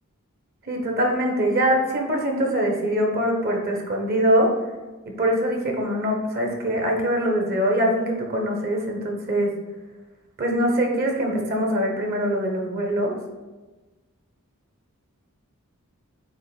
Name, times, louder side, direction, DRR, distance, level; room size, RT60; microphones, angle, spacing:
voice 1, 0.6-4.5 5.0-9.5 10.4-13.2, equal, 45° right, 0 dB, 1.3 m, -23 dB
8.7 x 3.1 x 5.1 m, 1.2 s
head